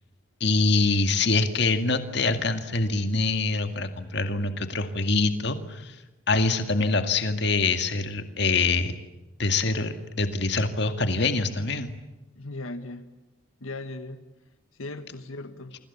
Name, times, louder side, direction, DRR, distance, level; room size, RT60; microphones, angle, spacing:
voice 1, 0.4-6.0 6.3-9.0 9.4-11.9, left 3 dB, 55° left, 8 dB, 2.1 m, -25 dB
voice 2, 12.4-13.1 13.6-14.2 14.7-15.8, left 2 dB, 85° left, 9 dB, 1.8 m, -38 dB
30.0 x 25.0 x 7.2 m, 1.0 s
head